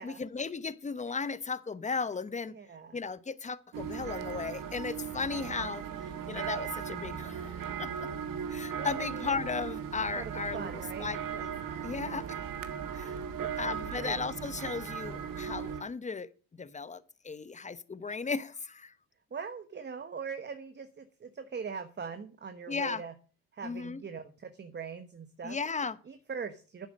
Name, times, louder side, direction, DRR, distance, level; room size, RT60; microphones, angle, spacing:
voice 1, 0.0-2.5 2.9-5.8 6.3-8.1 8.5-11.5 11.8-12.3 12.9-13.1 13.6-18.9 22.7-23.0 23.6-24.0 25.4-26.0, left 5 dB, 20° left, 1.0 m, -36 dB
voice 2, 2.5-3.0 8.8-9.2 10.2-10.3 10.5-11.1 12.0-12.4 13.4-13.5 14.0-14.2 19.3-23.1 23.5-25.6 26.1-26.9, right 6 dB, 30° right, 1.2 m, -41 dB
sound 1, 3.7-15.8, right 8 dB, 60° right, 1.7 m, -38 dB
10.5 x 8.0 x 6.4 m
supercardioid pair, 80°, 37 cm